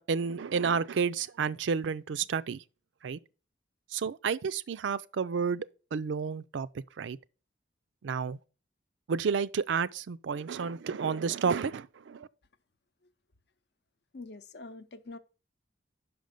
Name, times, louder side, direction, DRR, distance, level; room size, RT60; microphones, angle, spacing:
voice 1, 0.0-2.6 3.0-3.2 3.9-6.7 7.0-7.2 8.0-8.4 9.1-12.3, right 6 dB, 80° right, 0.4 m, -31 dB
voice 2, 14.1-15.2, left 3 dB, 60° left, 0.7 m, -45 dB
6.0 x 5.2 x 6.5 m
head